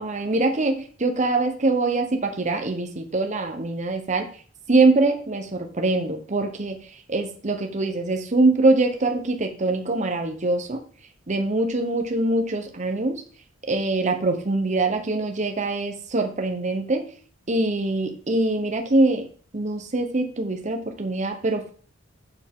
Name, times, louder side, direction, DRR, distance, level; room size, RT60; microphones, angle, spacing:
voice 1, 0.0-4.3 4.7-6.8 7.1-10.8 11.3-13.2 13.7-17.1 17.5-19.3 19.5-21.7, right 2 dB, 40° right, 5 dB, 0.9 m, -23 dB
7.0 x 6.9 x 3.6 m, 0.43 s
head